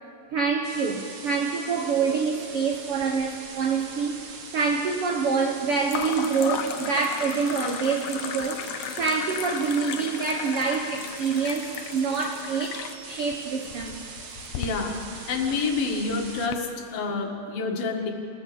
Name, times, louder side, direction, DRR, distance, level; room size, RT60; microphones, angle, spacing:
voice 1, 0.3-4.1 4.5-14.0, right 5 dB, 85° right, 3 dB, 1.2 m, -26 dB
sound 1, 0.6-16.5, right 4 dB, 50° right, 2.4 m, -42 dB
sound 2, 2.7-3.5 3.8-4.4 5.9-16.6, left 9 dB, 85° left, 2.9 m, -36 dB
voice 2, 14.6-15.0 15.3-18.1, left 4 dB, 70° left, 2 dB, 3.6 m, -28 dB
29.5 x 16.5 x 7.0 m, 2.6 s
omnidirectional pair, 4.4 m